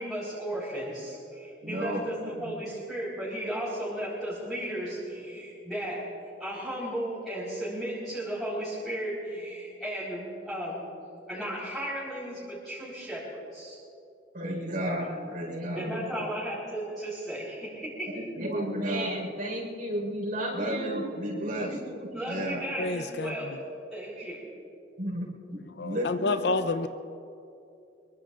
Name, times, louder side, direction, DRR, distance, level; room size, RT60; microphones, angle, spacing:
voice 1, 0.0-6.0 6.4-10.8 11.3-13.8 15.7-18.1 22.1-23.5 23.9-24.4, right 1 dB, ahead, -10 dB, 4.5 m, -35 dB
voice 2, 1.6-2.3 14.3-16.2 18.1-22.6 24.2-24.3 25.0-26.5, equal, 55° right, -4 dB, 4.7 m, -33 dB
voice 3, 22.8-23.6 25.6-26.9, left 3 dB, 65° left, 9 dB, 0.7 m, -29 dB
25.0 x 22.5 x 2.6 m, 2.6 s
head